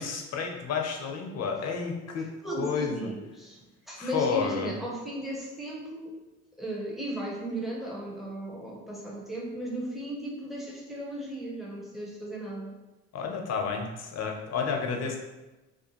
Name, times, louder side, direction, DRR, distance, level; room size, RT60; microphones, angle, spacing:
voice 1, 0.0-2.3 2.6-3.1 4.0-4.7 13.1-15.2, left 5 dB, 50° left, 2 dB, 0.6 m, -31 dB
voice 2, 2.4-3.6 3.9-6.1 6.6-12.7, right 1 dB, ahead, -3 dB, 0.8 m, -36 dB
2.5 x 2.2 x 2.9 m, 1.1 s
hypercardioid pair, 60°, 34 cm